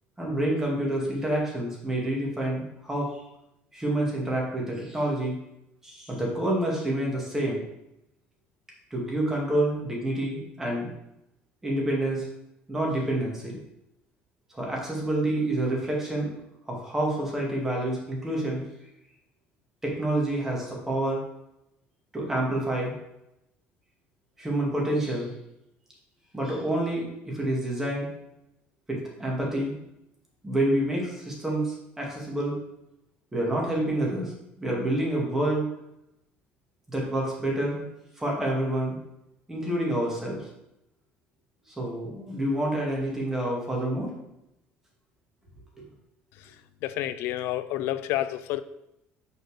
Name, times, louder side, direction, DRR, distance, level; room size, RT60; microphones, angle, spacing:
voice 1, 0.2-3.1 3.7-5.3 5.8-7.6 8.9-10.9 11.6-12.3 12.7-13.6 14.5-16.3 16.7-18.6 19.8-21.2 22.1-22.9 24.4-25.3 26.3-28.1 28.9-29.7 30.4-32.5 33.3-35.6 36.9-37.8 38.2-39.0 39.5-40.5 41.8-44.1 45.8-45.9, right 1 dB, 10° right, -3 dB, 2.3 m, -28 dB
voice 2, 46.8-48.6, left 13 dB, 75° left, 13 dB, 0.6 m, -29 dB
6.7 x 4.5 x 6.5 m, 0.84 s
cardioid pair, 155°, 4 cm